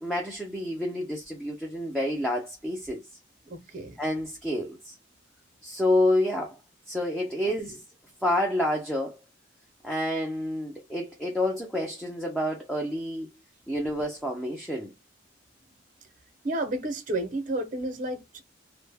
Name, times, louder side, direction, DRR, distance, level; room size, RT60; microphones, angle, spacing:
voice 1, 0.0-3.1 4.0-4.9 5.6-6.6 6.9-7.8 8.2-9.2 9.8-13.3 13.7-14.9, left 1 dB, ahead, 0.4 m, -28 dB
voice 2, 3.4-4.0 7.4-7.6 16.4-18.4, right 1 dB, 40° right, 0.6 m, -31 dB
2.6 x 2.0 x 3.3 m
head